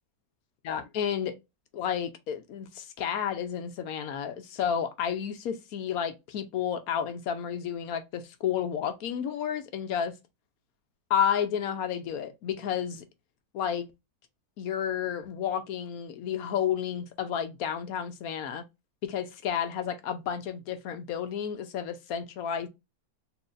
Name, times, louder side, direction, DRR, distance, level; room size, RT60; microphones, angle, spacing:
voice 1, 0.6-1.4 1.7-10.1 11.1-13.0 13.5-13.9 14.6-18.6 19.0-22.7, left 8 dB, 65° left, 1.0 m, -31 dB
4.3 x 3.1 x 2.4 m
omnidirectional pair, 1.9 m